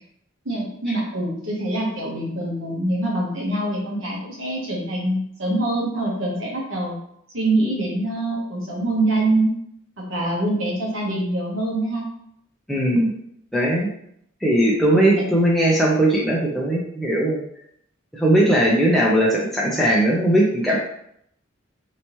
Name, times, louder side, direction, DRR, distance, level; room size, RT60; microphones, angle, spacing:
voice 1, 0.4-6.9 7.3-9.5 10.1-12.1 14.9-15.3, right 1 dB, 80° right, -3 dB, 1.1 m, -24 dB
voice 2, 12.7-13.1 13.5-13.9 14.4-17.4 18.1-20.8, right 1 dB, ahead, -5 dB, 0.5 m, -19 dB
3.2 x 2.8 x 2.9 m, 0.72 s
head